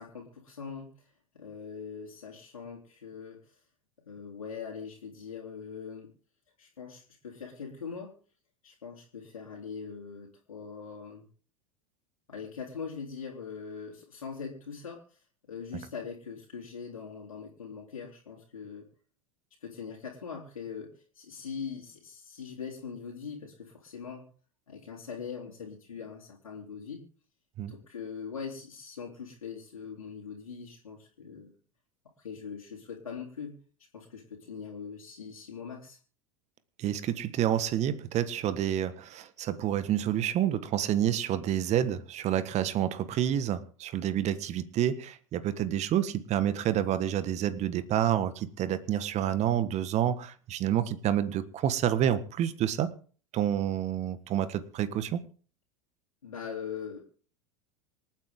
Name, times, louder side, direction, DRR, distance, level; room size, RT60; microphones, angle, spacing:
voice 1, 0.0-3.6 4.1-6.1 6.6-8.1 8.6-11.2 12.3-15.2 15.5-18.9 19.6-24.3 24.7-27.0 27.7-31.5 32.2-33.6 33.9-36.0 56.2-57.0, left 6 dB, 85° left, 3.6 m, -42 dB
voice 2, 36.8-52.9 53.3-55.2, right 10 dB, 40° right, 1.6 m, -28 dB
27.0 x 9.4 x 3.8 m
hypercardioid pair, 85°, 17 cm